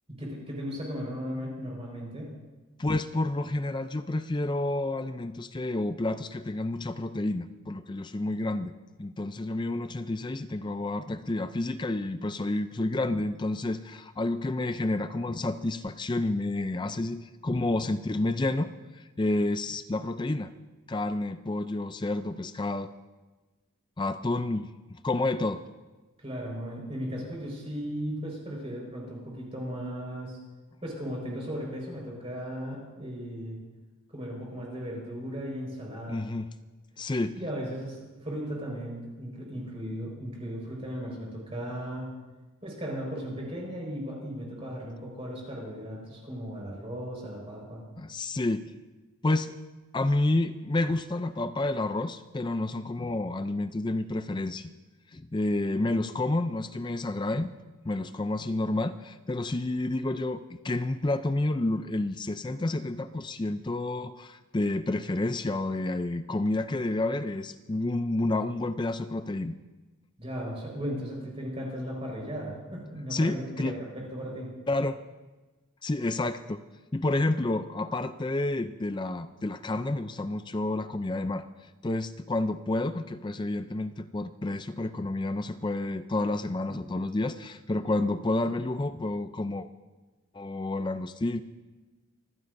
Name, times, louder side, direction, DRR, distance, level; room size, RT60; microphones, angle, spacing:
voice 1, 0.1-2.4 26.2-30.4 30.8-33.6 34.1-36.2 37.3-42.1 42.6-47.8 70.2-74.5, equal, 25° right, -2 dB, 4.9 m, -36 dB
voice 2, 2.8-8.7 9.0-20.5 20.9-22.9 24.0-25.6 36.1-36.5 37.0-37.3 48.0-48.6 49.2-49.5 49.9-54.7 55.1-57.5 57.8-69.6 73.1-73.7 74.7-75.0 75.8-76.6 76.9-81.5 81.8-89.7 90.3-91.4, left 2 dB, 20° left, 11 dB, 0.4 m, -30 dB
26.0 x 16.0 x 2.6 m, 1.2 s
head